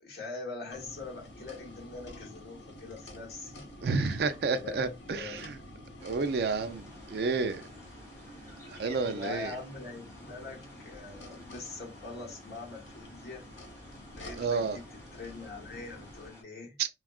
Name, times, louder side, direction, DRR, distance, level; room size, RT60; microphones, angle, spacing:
voice 1, 0.0-3.7 4.5-4.8 5.1-5.7 9.0-13.4 14.1-14.8 15.1-16.8, left 3 dB, 60° left, 1.1 m, -43 dB
sound 1, 0.7-16.3, left 1 dB, 85° left, 1.0 m, -49 dB
voice 2, 3.8-5.6 6.0-7.7 8.7-9.5 14.3-14.8 16.8-16.9, right 4 dB, 60° right, 0.3 m, -30 dB
sound 2, 6.0-16.4, equal, 15° left, 1.3 m, -54 dB
3.5 x 2.3 x 2.3 m
head